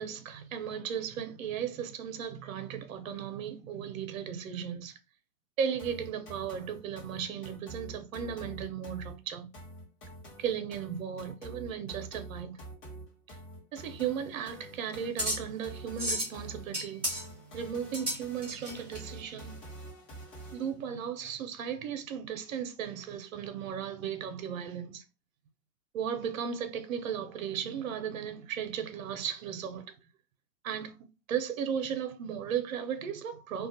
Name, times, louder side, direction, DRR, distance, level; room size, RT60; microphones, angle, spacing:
voice 1, 0.0-5.0 5.6-9.5 10.4-12.6 13.3-13.4 13.7-17.2 17.5-19.6 20.5-25.0 25.9-29.9 30.6-31.0 31.3-33.7, right 8 dB, 60° right, 0.6 m, -36 dB
sound 1, 5.8-20.8, right 1 dB, 30° left, 0.9 m, -47 dB
sound 2, 13.8-19.0, right 1 dB, 10° right, 0.3 m, -36 dB
2.4 x 2.2 x 2.7 m
hypercardioid pair, 135°, 47 cm